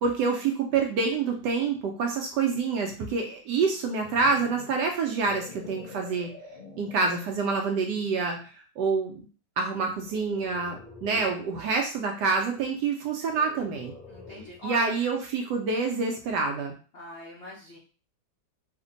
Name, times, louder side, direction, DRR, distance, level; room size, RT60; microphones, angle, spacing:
voice 1, 0.0-6.3 6.8-9.2 9.6-13.9 14.6-16.7, right 4 dB, 70° right, 2 dB, 1.0 m, -27 dB
sound 1, 3.7-7.3 8.0-8.2 10.0-11.5 13.2-14.7, left 3 dB, 40° left, 0.7 m, -47 dB
voice 2, 14.1-14.9 16.9-17.8, equal, 80° left, -4 dB, 0.5 m, -41 dB
3.3 x 2.2 x 3.8 m, 0.38 s
omnidirectional pair, 2.2 m